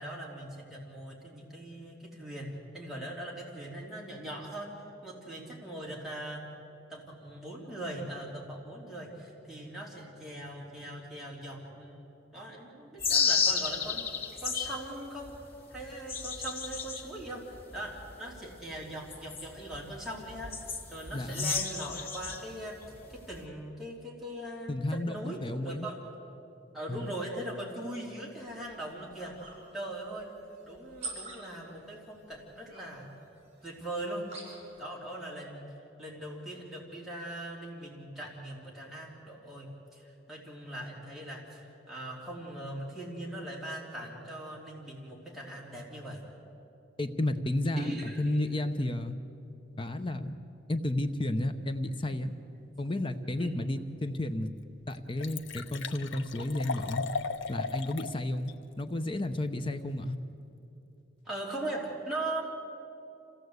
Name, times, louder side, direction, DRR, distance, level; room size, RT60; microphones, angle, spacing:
voice 1, 0.0-4.7 5.0-6.5 6.9-12.0 12.3-15.3 15.7-22.8 23.1-26.0 26.7-30.3 30.6-33.2 33.6-34.3 34.8-35.7 36.0-46.3 47.8-48.4 53.4-53.6 61.2-62.4, right 1 dB, ahead, -5 dB, 3.3 m, -40 dB
sound 1, 13.0-14.8 15.2-22.4 22.8-23.5, left 6 dB, 50° left, 2.2 m, -32 dB
voice 2, 21.1-21.5 24.7-25.9 26.9-27.1 47.0-49.1 49.8-50.4 50.7-52.3 52.8-54.5 54.9-57.0 57.5-60.2, left 1 dB, 25° left, 8 dB, 0.8 m, -32 dB
sound 2, 28.3-34.8, right 3 dB, 35° right, 7.6 m, -48 dB
Liquid, 54.0-54.1 54.6-54.7 54.9-58.1 58.5-58.6, left 5 dB, 75° left, 0.9 m, -37 dB
26.5 x 16.5 x 8.1 m, 2.8 s
head